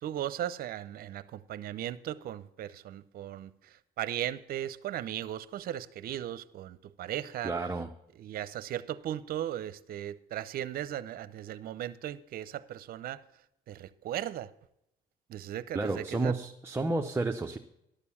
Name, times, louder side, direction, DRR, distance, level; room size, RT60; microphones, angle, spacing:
voice 1, 0.0-7.5 8.2-13.2 13.7-14.5 15.3-16.3, right 11 dB, 60° right, 0.6 m, -37 dB
voice 2, 7.4-7.9 15.7-17.6, right 3 dB, 15° right, 0.6 m, -31 dB
11.5 x 6.8 x 7.1 m
cardioid pair, 110°, 17 cm